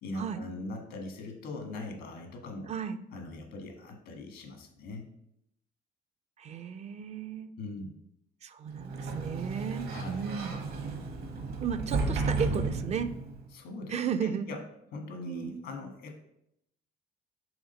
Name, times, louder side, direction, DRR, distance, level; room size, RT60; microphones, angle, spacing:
voice 1, 0.0-2.7 3.1-5.1 7.6-7.9 9.9-10.3 13.5-14.6 14.9-16.2, left 2 dB, 80° left, 4 dB, 1.4 m, -41 dB
voice 2, 2.7-3.0 6.4-7.5 8.4-10.6 11.6-13.1 13.9-14.5 15.3-15.6, right 7 dB, 40° right, 10 dB, 0.4 m, -34 dB
Sliding door, 8.7-13.5, right 3 dB, 65° right, 1.1 m, -33 dB
4.9 x 3.6 x 5.3 m, 0.78 s
cardioid pair, 110°, 17 cm